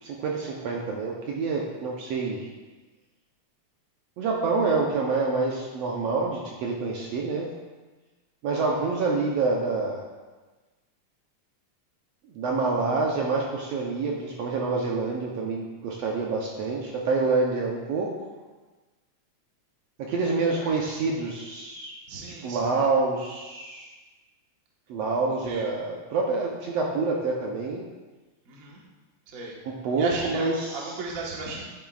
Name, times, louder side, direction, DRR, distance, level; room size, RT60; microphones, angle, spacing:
voice 1, 0.0-2.5 4.2-7.5 8.4-10.0 12.3-18.1 20.0-21.9 22.4-23.9 24.9-27.8 29.6-30.9, right 3 dB, 70° right, -2 dB, 1.7 m, -27 dB
voice 2, 22.1-22.7 25.4-25.7 28.5-28.8 29.3-29.5 29.9-31.7, right 3 dB, 40° right, -3 dB, 1.2 m, -36 dB
10.5 x 9.0 x 2.4 m, 1.3 s
omnidirectional pair, 3.4 m